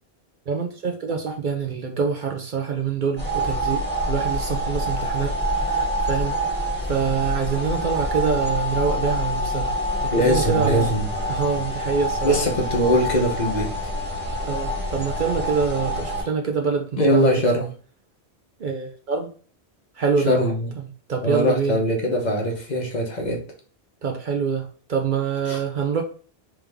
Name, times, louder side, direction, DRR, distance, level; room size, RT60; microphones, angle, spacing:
voice 1, 0.5-5.3 5.6-6.4 6.9-9.7 10.0-10.9 11.3-12.4 14.4-17.3 18.6-19.3 20.0-20.4 21.1-21.8 24.0-26.0, right 5 dB, 55° right, 3 dB, 0.7 m, -25 dB
sound 1, 3.2-16.2, right 1 dB, 10° right, 1.8 m, -26 dB
voice 2, 10.1-11.1 12.2-13.7 17.0-17.7 20.2-20.7 21.2-23.4 25.5-25.6, equal, 45° left, 0 dB, 1.0 m, -21 dB
3.5 x 3.3 x 3.4 m, 0.41 s
omnidirectional pair, 1.1 m